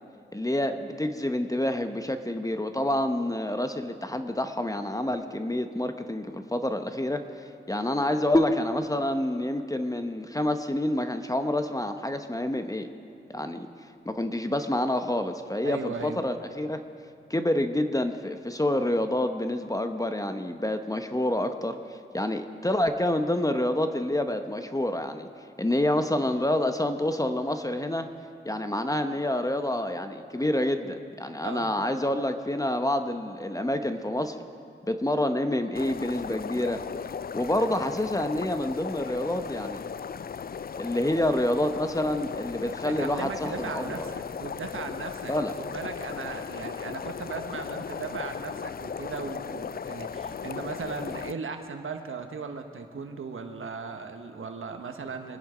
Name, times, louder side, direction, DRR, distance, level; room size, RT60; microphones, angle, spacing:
voice 1, 0.3-12.9 13.3-13.7 14.0-16.8 17.3-25.3 25.6-28.1 28.4-34.3 34.9-36.8 37.3-39.8 40.8-44.1 45.3-45.5, left 1 dB, 15° left, 7 dB, 0.9 m, -28 dB
voice 2, 15.6-16.2 31.4-31.7 42.8-55.4, right 5 dB, 80° right, 6 dB, 1.3 m, -37 dB
sound 1, 35.7-51.3, left 6 dB, 45° left, 0.4 m, -37 dB
25.0 x 10.5 x 5.1 m, 2.6 s
cardioid pair, 65°, 21 cm